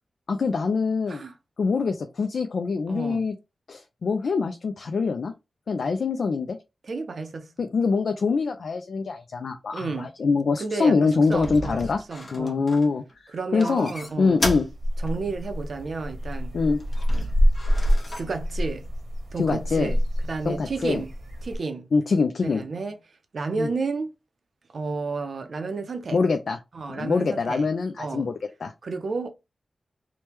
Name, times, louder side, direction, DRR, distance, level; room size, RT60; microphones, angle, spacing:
voice 1, 0.3-1.2 1.6-3.3 3.7-5.3 5.7-6.6 7.6-12.0 12.3-13.0 13.5-13.9 14.2-14.7 16.5-16.8 19.4-19.9 20.5-21.0 21.9-22.6 23.6-23.7 26.1-26.6 26.9-28.3 28.6-28.7, left 4 dB, 75° left, 0.3 m, -24 dB
voice 2, 2.9-3.2 6.8-7.7 9.7-10.1 10.6-11.8 12.1-12.6 13.3-14.4 15.0-16.5 18.2-18.9 19.3-20.0 20.2-21.1 21.4-21.9 22.4-23.0 23.3-24.1 24.7-26.2 26.7-27.6 28.0-28.3 28.8-29.3, right 4 dB, 65° right, 0.5 m, -31 dB
sound 1, 11.2-13.1 13.6-14.7 15.0-15.1 16.8-18.3, left 1 dB, 40° left, 0.8 m, -33 dB
sound 2, 14.3-21.6, equal, 80° right, 0.9 m, -26 dB
2.9 x 2.1 x 3.3 m
wide cardioid pair, 105°, 0 cm